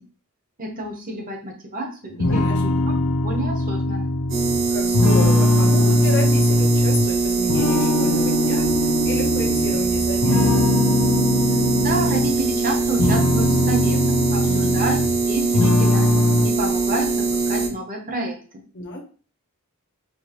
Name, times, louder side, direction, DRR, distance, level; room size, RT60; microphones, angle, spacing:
voice 1, 0.6-2.5 2.9-3.0 3.2-4.1 11.8-14.0 14.3-15.0 15.3-16.2 16.4-18.4, right 2 dB, 40° right, 1 dB, 1.0 m, -29 dB
voice 2, 2.1-2.8 4.7-10.6 14.4-15.0 18.7-19.0, left 2 dB, 55° left, 0 dB, 1.0 m, -31 dB
sound 1, 2.2-7.1 7.5-9.8 10.2-12.3 12.8-15.2 15.5-16.5, left 2 dB, 80° left, 0.6 m, -20 dB
sound 2, 4.3-17.7, right 4 dB, 60° right, 1.1 m, -22 dB
4.5 x 2.6 x 3.0 m, 0.39 s
head